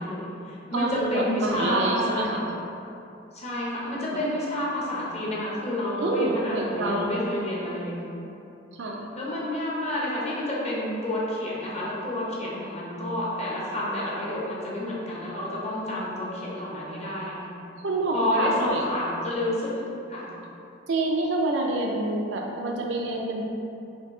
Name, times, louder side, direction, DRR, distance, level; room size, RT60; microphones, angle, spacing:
voice 1, 0.0-2.3 3.3-8.0 9.2-17.4 18.1-19.8 20.1-20.3, left 1 dB, 35° left, -6 dB, 0.9 m, -29 dB
voice 2, 0.7-2.4 6.0-7.1 8.8-9.0 17.8-18.9 20.9-23.4, right 2 dB, 75° right, 0 dB, 0.4 m, -27 dB
4.5 x 2.8 x 3.7 m, 2.8 s
head